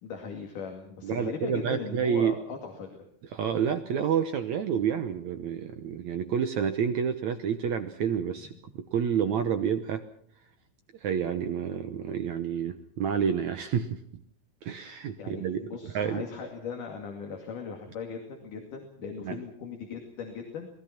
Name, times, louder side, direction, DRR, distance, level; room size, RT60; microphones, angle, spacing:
voice 1, 0.0-3.0 8.4-8.5 15.2-20.7, left 5 dB, 60° left, 2 dB, 3.7 m, -38 dB
voice 2, 1.0-2.4 3.3-10.0 11.0-14.0 14.6-15.7 15.9-16.2 19.2-19.4, right 8 dB, 70° right, 8 dB, 1.9 m, -29 dB
27.5 x 19.5 x 5.9 m, 0.63 s
omnidirectional pair, 4.4 m